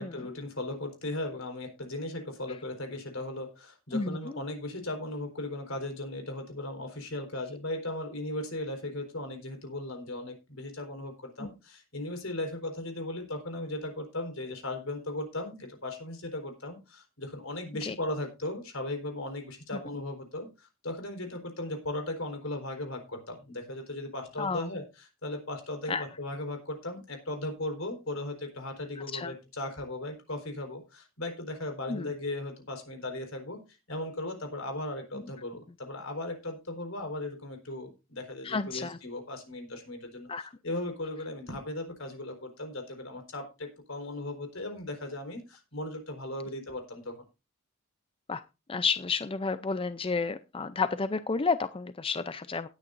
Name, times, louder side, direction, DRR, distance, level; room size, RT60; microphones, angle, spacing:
voice 1, 0.0-33.6 33.9-40.3 40.6-47.1, left 1 dB, 75° left, 5 dB, 4.3 m, -37 dB
voice 2, 29.0-29.3 31.9-32.1 38.4-39.0 40.3-40.5 48.3-48.4 48.7-52.7, left 4 dB, 25° left, 12 dB, 0.5 m, -31 dB
18.0 x 9.7 x 2.6 m, 0.28 s
head